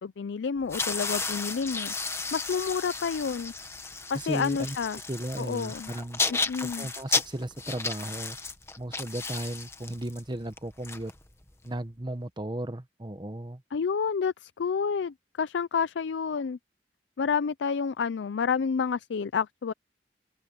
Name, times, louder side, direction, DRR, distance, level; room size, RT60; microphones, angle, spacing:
voice 1, 0.0-1.9 2.3-3.5 4.1-5.0 5.4-5.9 6.3-6.9 13.7-16.6 17.2-19.7, left 6 dB, 90° left, 0.4 m, -29 dB
sound 1, 0.6-11.7, left 4 dB, 15° left, 1.4 m, -33 dB
voice 2, 4.1-6.2 6.6-8.4 8.8-11.1 11.6-13.6, right 1 dB, 25° right, 1.3 m, -35 dB
open air
head